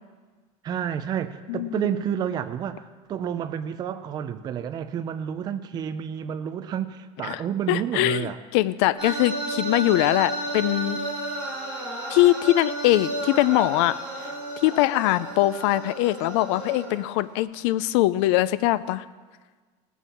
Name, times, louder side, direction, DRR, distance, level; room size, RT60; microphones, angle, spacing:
voice 1, 0.6-8.4, right 9 dB, 30° right, 10 dB, 0.5 m, -30 dB
voice 2, 1.5-1.8 7.3-7.4 7.7-11.0 12.1-14.0 14.6-19.0, left 16 dB, 80° left, 16 dB, 0.5 m, -22 dB
sound 1, 9.0-17.0, right 2 dB, 5° right, 5.3 m, -32 dB
18.0 x 7.1 x 7.2 m, 1.4 s
cardioid pair, 165°, 14 cm